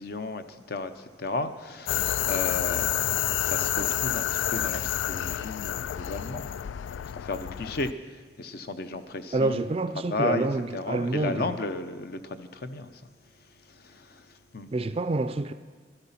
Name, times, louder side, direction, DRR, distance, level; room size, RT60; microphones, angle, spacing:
voice 1, 0.0-6.5 7.0-9.7 10.1-13.0 13.7-14.7, left 3 dB, 55° left, 0.7 m, -34 dB
sound 1, 1.9-7.9, left 11 dB, 80° left, 0.3 m, -29 dB
voice 2, 9.3-11.5 14.7-15.5, right 2 dB, 30° right, 0.4 m, -27 dB
13.5 x 12.0 x 5.7 m
head